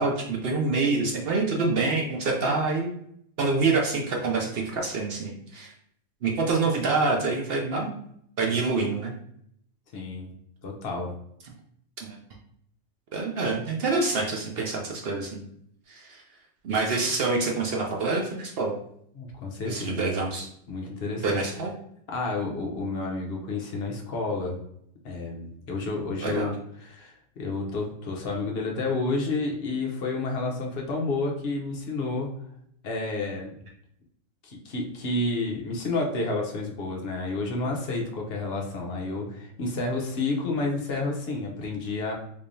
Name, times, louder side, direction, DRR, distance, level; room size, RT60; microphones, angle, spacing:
voice 1, 0.0-2.9 3.4-5.7 6.2-7.9 8.4-9.1 12.0-12.2 13.1-15.4 15.9-16.2 16.6-18.7 19.7-20.5 21.2-21.7 26.2-26.5, right 3 dB, 60° right, 1 dB, 0.7 m, -26 dB
voice 2, 9.9-10.3 10.6-11.1 19.1-20.2 20.7-21.4 22.1-24.6 25.0-32.3 32.8-33.5 34.4-42.1, left 3 dB, 55° left, -1 dB, 0.9 m, -30 dB
3.6 x 3.3 x 2.6 m, 0.71 s
omnidirectional pair, 1.4 m